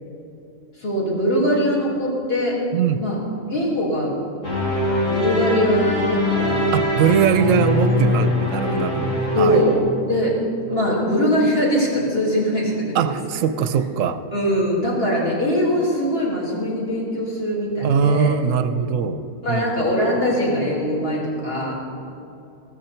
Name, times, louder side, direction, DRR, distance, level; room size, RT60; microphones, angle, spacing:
voice 1, 0.8-2.6 3.0-3.2 3.5-4.2 5.1-6.7 9.3-9.7 10.0-10.4 10.7-13.1 14.3-18.4 19.4-21.8, equal, 40° left, -5 dB, 3.2 m, -21 dB
sound 1, 4.4-9.8, left 1 dB, 60° left, 2.7 m, -22 dB
voice 2, 6.7-9.6 12.9-14.2 17.8-19.7, right 7 dB, 70° right, 11 dB, 0.9 m, -21 dB
15.0 x 13.5 x 4.4 m, 2.7 s
omnidirectional pair, 1.5 m